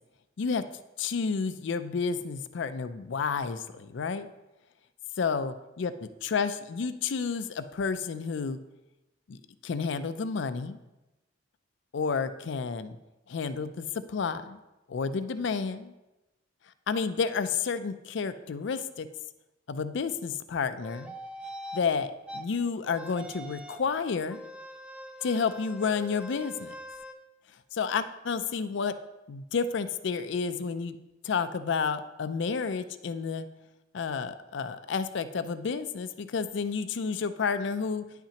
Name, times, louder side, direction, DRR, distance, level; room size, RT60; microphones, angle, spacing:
voice 1, 1.0-4.3 5.2-5.9 6.2-8.6 9.3-10.8 11.9-13.0 13.3-14.6 14.9-15.9 16.9-19.1 19.7-21.1 21.7-24.4 25.2-26.7 27.7-28.9 29.3-31.0 31.2-33.5 33.9-38.0, left 5 dB, 65° left, 11 dB, 0.4 m, -30 dB
sound 1, 20.8-21.8 22.3-22.4 22.8-23.9 24.3-27.1, equal, 5° right, 0.4 m, -43 dB
10.0 x 5.8 x 2.9 m, 1.0 s
head